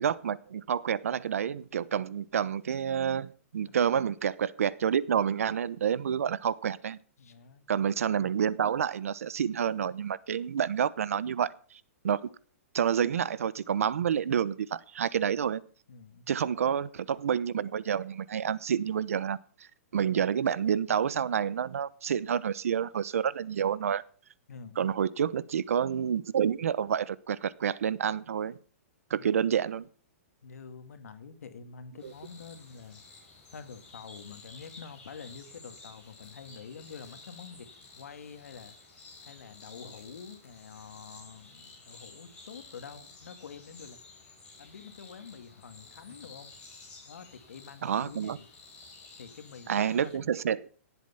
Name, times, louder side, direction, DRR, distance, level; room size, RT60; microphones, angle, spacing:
voice 1, 0.0-7.0 7.7-11.5 12.0-12.2 12.7-15.6 16.3-19.4 19.9-24.0 24.8-28.6 29.1-29.8 32.0-32.1 47.8-48.4 49.7-50.7, right 8 dB, 70° right, 0.9 m, -28 dB
voice 2, 7.2-7.7 15.9-16.2 24.5-24.8 30.4-33.0 33.5-37.7 37.9-38.7 39.2-44.0 44.6-46.5 47.1-48.5 49.2-50.3, left 6 dB, 85° left, 2.0 m, -47 dB
sound 1, 32.0-50.1, left 3 dB, 10° left, 5.0 m, -52 dB
18.0 x 8.2 x 5.7 m
hypercardioid pair, 175°, 8 cm